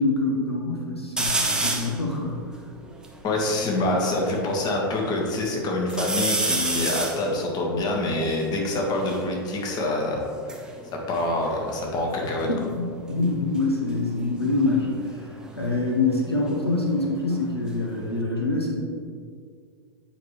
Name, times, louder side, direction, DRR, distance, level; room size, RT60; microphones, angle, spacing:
voice 1, 0.0-2.4 12.5-18.7, left 2 dB, 90° left, -1 dB, 1.0 m, -25 dB
sound 1, 1.2-2.0 2.6-2.7 2.8-4.4 4.9-5.5 5.9-9.3 10.2-12.1 12.4-12.9 14.4-17.1 17.4-18.2, right 2 dB, 5° right, 0.7 m, -30 dB
voice 2, 3.2-10.6 10.9-12.5, left 2 dB, 30° left, -1 dB, 1.5 m, -26 dB
8.9 x 5.0 x 3.2 m, 2.1 s
figure-of-eight pair, 95°, 13 cm